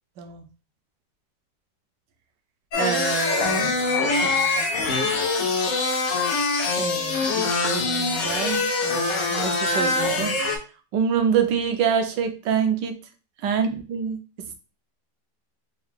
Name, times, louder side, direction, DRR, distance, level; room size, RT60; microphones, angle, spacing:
sound 1, 2.7-10.6, left 3 dB, 65° left, 1.0 m, -24 dB
voice 1, 2.7-4.6 6.8-10.4 10.9-13.0 13.4-14.2, right 7 dB, 80° right, 7 dB, 1.3 m, -26 dB
4.4 x 2.4 x 3.3 m, 0.34 s
omnidirectional pair, 1.9 m